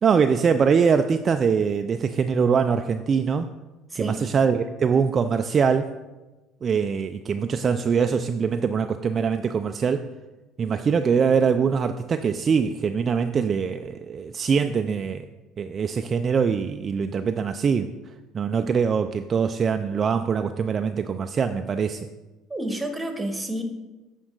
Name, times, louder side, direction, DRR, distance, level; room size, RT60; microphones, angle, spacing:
voice 1, 0.0-3.5 4.0-5.9 6.6-10.0 10.6-15.3 15.6-17.9 18.3-22.1, right 6 dB, 35° right, 7 dB, 0.4 m, -23 dB
voice 2, 3.9-4.3 22.5-23.6, right 1 dB, 10° right, 5 dB, 1.3 m, -29 dB
8.6 x 5.4 x 3.9 m, 1.1 s
supercardioid pair, 95°, 0 cm